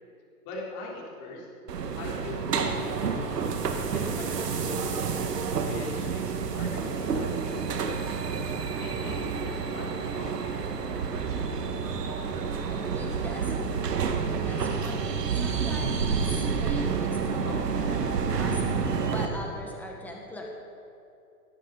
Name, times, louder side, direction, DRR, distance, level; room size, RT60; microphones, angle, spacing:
voice 1, 0.4-1.5 1.9-3.2 3.9-5.1 5.6-8.1 8.8-10.9 11.2-11.5, left 2 dB, 30° left, -3 dB, 3.5 m, -41 dB
sound 1, 1.7-19.3, right 5 dB, 80° right, 1.7 m, -29 dB
voice 2, 12.7-20.5, left 1 dB, 5° left, 0 dB, 1.4 m, -41 dB
18.5 x 12.5 x 4.0 m, 2.6 s
hypercardioid pair, 150°, 47 cm